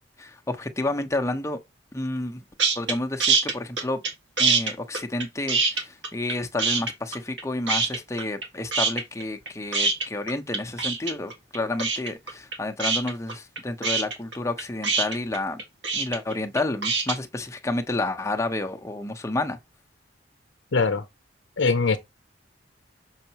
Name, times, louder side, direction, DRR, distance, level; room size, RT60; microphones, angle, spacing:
voice 1, 0.2-1.6 1.9-2.4 2.8-4.0 4.4-15.6 15.9-19.6, left 2 dB, 15° left, 0.9 m, -30 dB
sound 1, 2.6-2.9 3.2-4.1 4.4-6.3 6.6-7.4 7.7-8.4 8.7-17.2, right 4 dB, 75° right, 2.0 m, -24 dB
voice 2, 20.7-21.0 21.6-22.0, left 4 dB, 75° left, 0.7 m, -21 dB
6.6 x 5.7 x 2.9 m
head